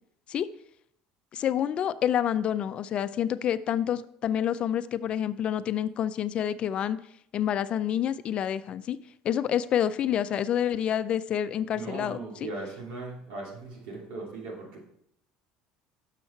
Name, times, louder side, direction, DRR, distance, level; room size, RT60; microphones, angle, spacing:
voice 1, 1.3-7.0 7.3-9.0 9.2-12.2, left 10 dB, 45° left, 14 dB, 0.4 m, -28 dB
voice 2, 11.7-14.8, right 3 dB, 75° right, -2 dB, 2.7 m, -38 dB
6.5 x 6.2 x 4.3 m, 0.72 s
supercardioid pair, 115°, 3 cm